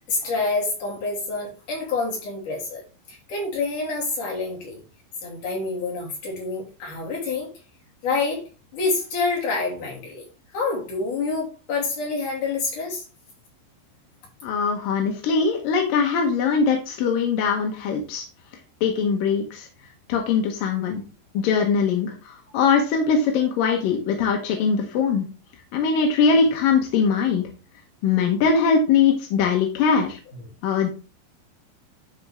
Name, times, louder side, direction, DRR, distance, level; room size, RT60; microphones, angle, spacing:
voice 1, 0.1-2.8 3.1-4.8 5.2-7.5 8.0-10.3 10.5-13.0 30.3-30.4, left 3 dB, 45° left, -3 dB, 4.3 m, -27 dB
voice 2, 14.4-18.3 18.8-19.7 20.1-21.0 21.3-25.2 25.7-27.5 28.0-30.2 30.6-30.9, left 5 dB, 70° left, 2 dB, 2.2 m, -21 dB
12.0 x 4.7 x 3.5 m, 0.34 s
omnidirectional pair, 5.3 m